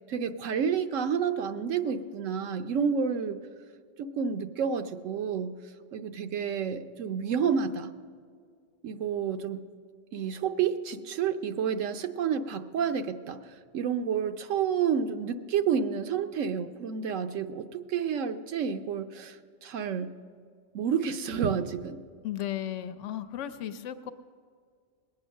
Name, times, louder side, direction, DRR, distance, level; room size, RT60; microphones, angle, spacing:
voice 1, 0.1-3.4 4.0-5.6 5.9-7.9 8.8-9.6 10.1-13.4 13.7-20.1 20.7-22.0, right 7 dB, 85° right, 8 dB, 1.1 m, -30 dB
voice 2, 22.2-24.1, left 11 dB, 75° left, 11 dB, 1.0 m, -35 dB
20.5 x 8.6 x 6.3 m, 2.1 s
omnidirectional pair, 1.3 m